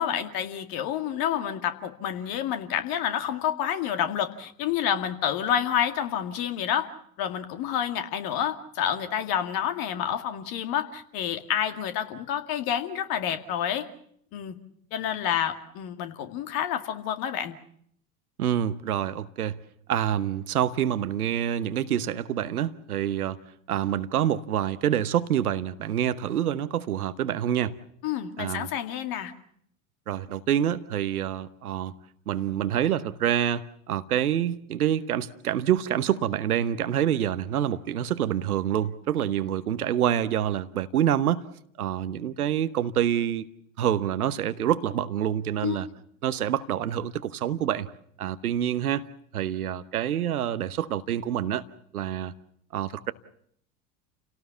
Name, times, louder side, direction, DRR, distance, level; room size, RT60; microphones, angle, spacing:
voice 1, 0.0-6.9 7.2-13.8 14.3-14.5 14.9-17.6 28.0-29.3 45.6-45.8, left 9 dB, 50° left, 2.3 m, -29 dB
voice 2, 18.4-19.6 19.9-23.4 23.7-27.7 28.4-28.7 30.1-31.9 32.3-41.4 41.8-43.4 43.8-45.9 46.2-47.9 48.2-49.0 49.3-51.6 51.9-52.3 52.7-53.1, right 10 dB, 75° right, 1.1 m, -27 dB
29.0 x 17.5 x 7.0 m
figure-of-eight pair, 75°, 44 cm